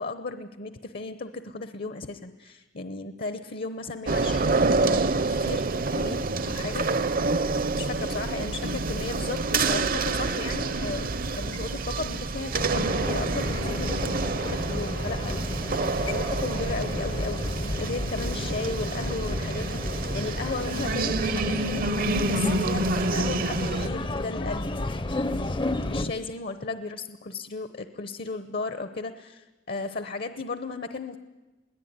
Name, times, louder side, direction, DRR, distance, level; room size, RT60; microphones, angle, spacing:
voice 1, 0.0-6.9 7.7-25.0 25.9-31.2, left 3 dB, 50° left, 10 dB, 0.9 m, -35 dB
sound 1, 4.1-23.9, right 3 dB, 50° right, 0.8 m, -28 dB
sound 2, 12.5-26.1, left 1 dB, 25° left, 0.7 m, -32 dB
22.0 x 17.0 x 9.5 m, 1.2 s
head